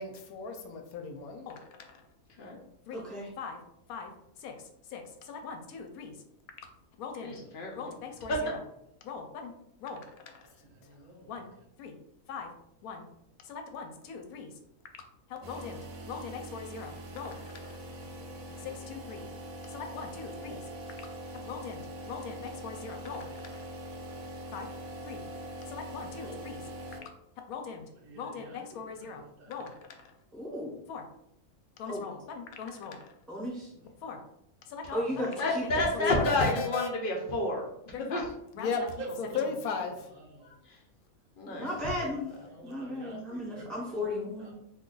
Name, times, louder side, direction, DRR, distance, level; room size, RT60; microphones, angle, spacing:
voice 1, 0.0-2.0 2.9-3.1 3.4-3.6 3.9-4.1 4.4-6.2 7.0-7.4 7.7-8.6 9.0-9.5 9.8-10.5 10.8-10.9 11.3-11.5 11.8-12.0 12.3-12.5 12.8-13.0 13.4-14.5 15.3-17.8 18.6-19.3 19.7-20.6 21.5-23.7 24.5-24.7 25.0-25.2 25.7-26.6 27.5-27.9 28.1-30.1 30.9-31.0 31.8-33.1 34.0-34.2 34.7-36.9 37.9-38.3 38.5-40.1 40.4-40.6, left 5 dB, 80° left, 4 dB, 1.0 m, -39 dB
voice 2, 2.9-3.3 30.3-30.8 31.9-32.0 33.3-33.7 34.9-36.3 41.5-42.3 42.6-44.5, left 1 dB, ahead, -5 dB, 0.6 m, -34 dB
voice 3, 7.2-7.9 35.4-38.2 40.7-40.8 41.4-41.7, left 2 dB, 60° left, -1 dB, 0.5 m, -30 dB
voice 4, 10.6-11.5 15.7-15.8 17.8-18.8 20.4-20.6 26.2-26.4 28.0-29.7 31.8-32.0 33.7-33.8 39.0-39.1 40.1-40.5 41.5-43.7 44.4-44.5, right 2 dB, 45° right, -2 dB, 0.6 m, -49 dB
sound 1, 15.4-27.0, right 1 dB, 75° right, 1.0 m, -43 dB
2.6 x 2.3 x 3.7 m, 0.77 s
omnidirectional pair, 1.5 m